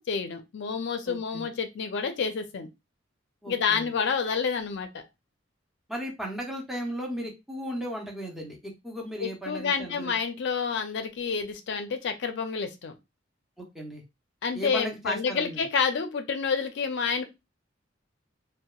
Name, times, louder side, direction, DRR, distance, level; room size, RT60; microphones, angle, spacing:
voice 1, 0.0-2.7 3.5-5.0 9.2-13.0 14.4-17.2, left 5 dB, 60° left, 8 dB, 0.4 m, -29 dB
voice 2, 1.1-1.5 3.4-3.9 5.9-10.1 13.6-14.0 14.5-15.6, equal, ahead, -1 dB, 0.6 m, -36 dB
2.8 x 2.1 x 2.3 m, 0.24 s
head